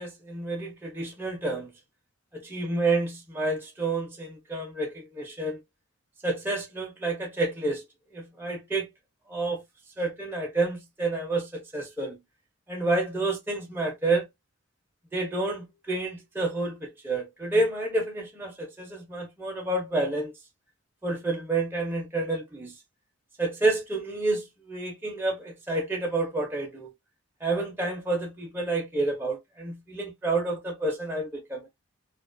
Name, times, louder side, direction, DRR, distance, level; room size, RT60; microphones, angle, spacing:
voice 1, 0.0-1.7 2.3-5.6 6.2-7.8 8.1-8.9 9.3-9.6 10.0-12.2 12.7-14.3 15.1-20.3 21.0-22.7 23.4-26.9 27.4-31.7, right 2 dB, 10° right, 0.4 m, -29 dB
2.3 x 2.2 x 2.4 m
head